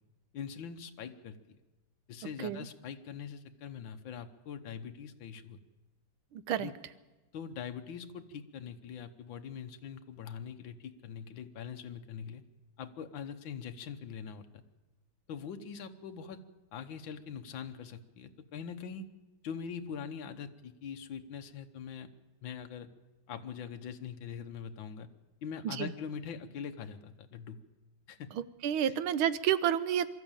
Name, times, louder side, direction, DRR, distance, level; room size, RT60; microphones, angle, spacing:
voice 1, 0.3-1.6 2.1-5.6 6.6-6.7 7.3-12.4 12.8-14.6 15.3-16.4 16.7-19.1 19.4-22.1 22.4-22.9 23.3-25.1 25.4-27.6 28.1-28.3 28.8-28.9, left 7 dB, 70° left, 7 dB, 1.8 m, -43 dB
voice 2, 6.3-6.7 25.6-25.9 28.3-30.1, right 10 dB, 85° right, 14 dB, 1.6 m, -30 dB
23.5 x 13.0 x 8.9 m, 1.2 s
omnidirectional pair, 2.2 m